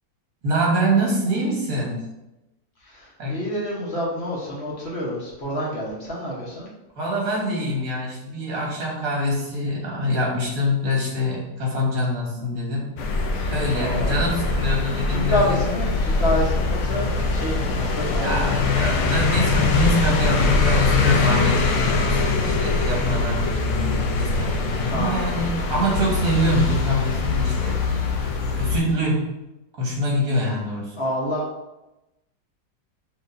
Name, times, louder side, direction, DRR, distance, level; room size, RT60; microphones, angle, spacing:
voice 1, 0.4-1.9 3.2-3.4 6.9-12.9 13.5-15.6 18.2-27.8 28.5-29.3 29.8-31.0, equal, 55° right, -3 dB, 1.9 m, -25 dB
voice 2, 2.8-6.7 13.7-14.2 14.7-14.8 15.1-18.5 24.9-25.9 31.0-31.5, left 1 dB, 45° left, -4 dB, 1.1 m, -28 dB
sound 1, 13.0-28.8, left 3 dB, 70° left, 0.7 m, -22 dB
6.5 x 3.1 x 2.6 m, 0.95 s
omnidirectional pair, 1.9 m